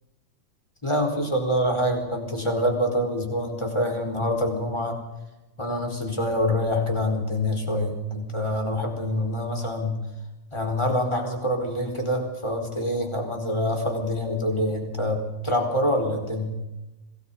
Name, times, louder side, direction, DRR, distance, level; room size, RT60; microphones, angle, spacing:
voice 1, 0.8-5.0 5.6-10.0 10.5-16.6, left 1 dB, 10° left, 3 dB, 4.3 m, -26 dB
26.5 x 19.0 x 5.6 m, 1.0 s
omnidirectional pair, 3.6 m